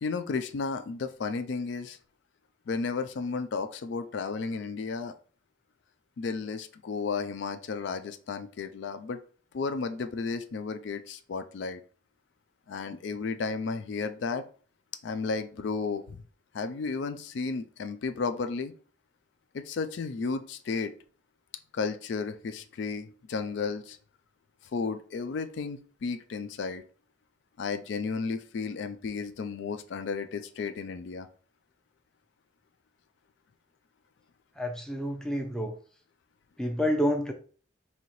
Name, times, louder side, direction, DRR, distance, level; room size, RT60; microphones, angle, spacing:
voice 1, 0.0-2.0 2.7-5.1 6.2-9.2 9.5-11.8 12.7-14.4 15.0-16.2 16.5-18.7 19.5-20.9 21.7-24.0 24.7-26.8 27.6-31.3, left 4 dB, 70° left, 9 dB, 0.4 m, -33 dB
voice 2, 34.6-35.7 36.6-37.3, equal, 5° left, 3 dB, 0.5 m, -28 dB
4.1 x 2.8 x 3.0 m, 0.42 s
head